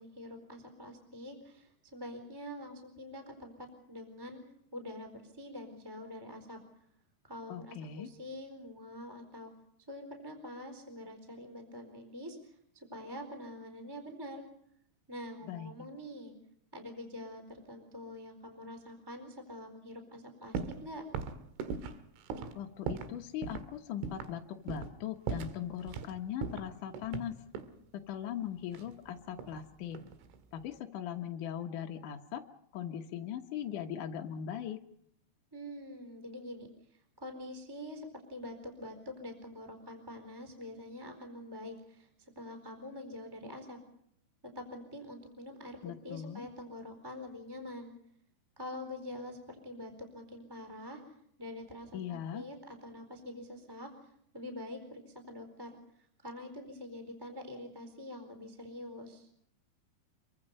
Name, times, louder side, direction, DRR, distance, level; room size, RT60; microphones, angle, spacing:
voice 1, 0.0-4.4 4.7-6.6 7.3-9.5 9.9-14.4 15.1-16.3 16.7-21.0 35.5-36.7 36.9-43.8 44.5-47.9 48.6-51.0 51.4-53.9 54.3-55.0 55.3-59.3, left 1 dB, 5° right, 5 dB, 3.6 m, -45 dB
voice 2, 7.5-8.1 15.4-15.7 22.6-27.4 27.9-30.0 30.5-32.4 32.7-34.8 45.8-46.5 51.9-52.4, left 10 dB, 70° left, 3 dB, 1.9 m, -40 dB
sound 1, 20.5-20.8 21.1-23.2 23.4-23.7 24.0-24.4 24.7-25.0 25.3-26.1 26.4-27.8 28.7-29.6 29.9-30.4, right 5 dB, 90° right, 4.2 m, -39 dB
26.5 x 24.0 x 5.5 m, 0.73 s
omnidirectional pair, 5.4 m